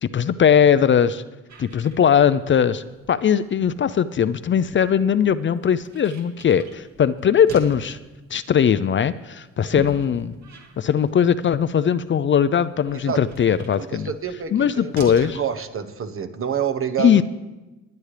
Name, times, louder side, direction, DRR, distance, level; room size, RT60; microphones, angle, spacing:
voice 1, 0.0-1.2 1.6-8.0 8.3-10.3 10.8-14.1 14.5-15.4 17.0-17.2, left 8 dB, 40° left, 14 dB, 0.5 m, -19 dB
sound 1, 1.5-15.4, right 3 dB, 65° right, 2.2 m, -44 dB
voice 2, 13.8-17.2, right 8 dB, 45° right, 9 dB, 1.1 m, -28 dB
20.0 x 9.7 x 3.3 m, 1.1 s
cardioid pair, 90°, 30 cm